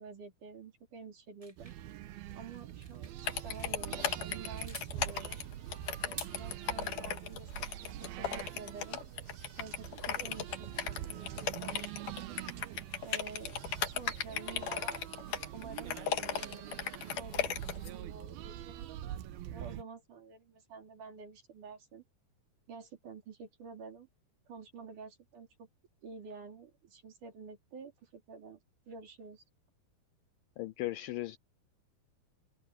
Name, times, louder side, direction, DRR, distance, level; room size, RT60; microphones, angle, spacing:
voice 1, 0.0-1.7 2.3-3.1 3.4-5.4 6.0-9.0 9.6-12.4 13.0-15.0 15.5-16.0 16.4-16.8 17.0-18.9 19.5-22.0 22.7-24.1 24.5-25.7 26.0-28.6 28.9-29.4, right 5 dB, 55° right, 4.8 m, -49 dB
sound 1, 1.4-3.8 4.2-4.9 6.0-6.8, right 1 dB, 10° right, 2.5 m, -49 dB
sound 2, 1.6-19.8, right 12 dB, 80° right, 2.8 m, -44 dB
sound 3, 3.3-17.9, left 9 dB, 60° left, 3.0 m, -36 dB
voice 2, 30.6-31.4, left 17 dB, 80° left, 2.1 m, -37 dB
omnidirectional pair, 4.5 m